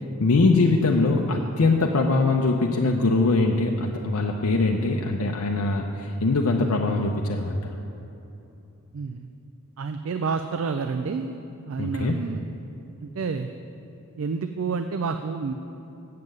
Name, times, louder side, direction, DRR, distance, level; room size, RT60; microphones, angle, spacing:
voice 1, 0.2-7.6 11.8-12.1, left 3 dB, 80° left, 1 dB, 0.6 m, -22 dB
voice 2, 8.9-9.3 9.8-11.4 11.7-12.4 13.0-13.5 14.2-15.5, right 5 dB, 65° right, 8 dB, 0.4 m, -29 dB
7.6 x 7.5 x 7.8 m, 3.0 s
head